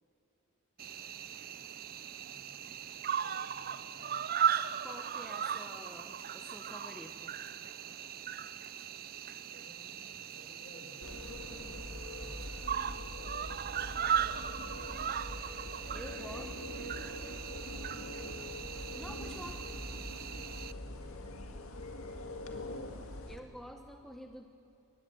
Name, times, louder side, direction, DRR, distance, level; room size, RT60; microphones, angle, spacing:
Cricket, 0.8-20.7, right 8 dB, 45° right, 0.6 m, -38 dB
voice 1, 2.2-2.6 3.2-4.2 9.4-12.7 13.1-14.8 16.3-17.1 18.0-18.4 21.0-21.6, left 2 dB, 45° left, 2 dB, 4.6 m, -56 dB
voice 2, 4.8-7.3 15.9-16.8 19.0-19.6 23.3-24.5, equal, ahead, 4 dB, 1.0 m, -49 dB
sound 1, 11.0-23.4, left 1 dB, 70° left, 2.0 m, -43 dB
24.0 x 19.0 x 7.8 m, 2.7 s
head